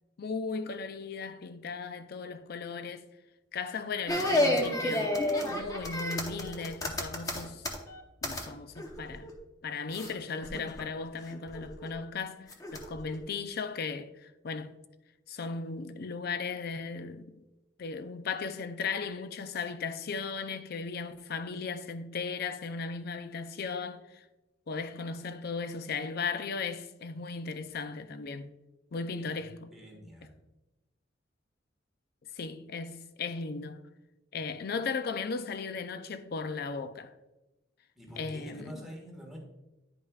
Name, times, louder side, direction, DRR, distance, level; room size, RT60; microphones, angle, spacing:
voice 1, 0.2-3.1 3.5-5.2 5.5-7.6 8.2-9.3 9.6-14.8 15.3-17.3 17.8-24.2 24.7-28.5 28.9-29.7 32.3-33.8 34.3-37.1 38.2-38.9, left 4 dB, 50° left, 0.5 m, -36 dB
sound 1, 4.1-8.5 8.8-9.3 9.9-10.1 10.4-10.8 11.3-11.9 12.5-13.1, left 1 dB, 20° left, 0.7 m, -31 dB
voice 2, 29.7-30.4 38.0-39.4, equal, ahead, 1.4 m, -46 dB
10.0 x 5.3 x 2.4 m
head